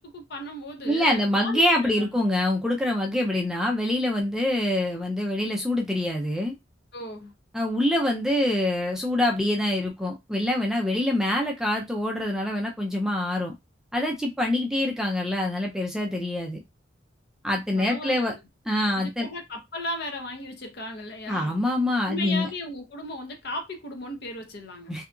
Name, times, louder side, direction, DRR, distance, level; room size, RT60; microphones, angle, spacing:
voice 1, 0.0-2.1 6.9-7.3 17.7-18.4 18.9-21.5 22.1-25.0, left 1 dB, 55° left, 0.7 m, -36 dB
voice 2, 0.9-6.5 7.5-13.5 13.9-16.6 17.4-18.3 18.7-19.3 21.3-22.5 24.9-25.0, left 1 dB, 5° right, 0.4 m, -25 dB
2.7 x 2.3 x 2.5 m
head